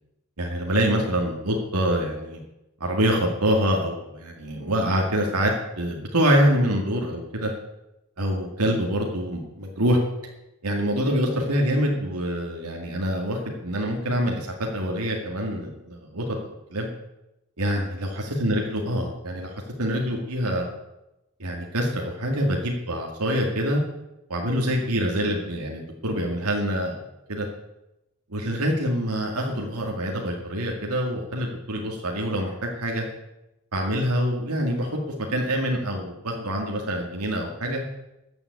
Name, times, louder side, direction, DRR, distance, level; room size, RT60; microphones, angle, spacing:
voice 1, 0.4-2.4 2.8-7.5 8.2-10.0 10.6-16.3 16.7-16.9 17.6-20.7 21.4-23.8 24.3-27.0 27.3-27.5 28.3-33.0 33.7-35.0 35.3-37.8, equal, 85° right, 0 dB, 2.1 m, -25 dB
14.0 x 7.3 x 9.5 m, 0.93 s
head